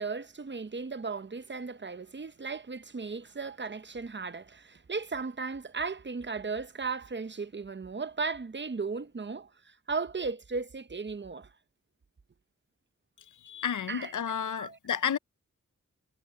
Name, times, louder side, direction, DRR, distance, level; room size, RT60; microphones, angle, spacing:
voice 1, 0.0-11.5 13.9-14.1 14.5-14.8, right 4 dB, 35° right, 0.7 m, -36 dB
voice 2, 13.4-15.2, left 8 dB, 75° left, 0.6 m, -31 dB
wide cardioid pair, 75°, 31 cm